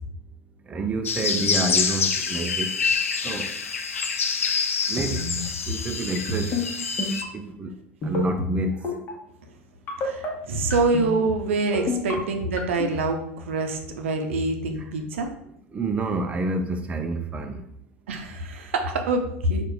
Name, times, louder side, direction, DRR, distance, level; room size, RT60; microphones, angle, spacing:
voice 1, 0.7-2.7 3.2-3.5 4.9-5.3 5.7-6.5 7.3-7.7 8.0-8.9 12.1-12.2 15.7-17.6, right 2 dB, 20° right, 6 dB, 0.4 m, -28 dB
sound 1, 1.1-7.2, left 5 dB, 80° left, 0.4 m, -26 dB
voice 2, 5.0-5.4 10.0-15.3 18.1-19.7, right 2 dB, 70° right, 5 dB, 0.6 m, -26 dB
sound 2, 6.2-6.6 7.0-7.3 8.0-8.5 8.8-9.1 9.9-10.3 10.7-11.1 11.7-12.1 12.6-12.9, left 3 dB, 35° left, 1.1 m, -27 dB
4.6 x 2.5 x 4.7 m, 0.75 s
figure-of-eight pair, 75°, 7 cm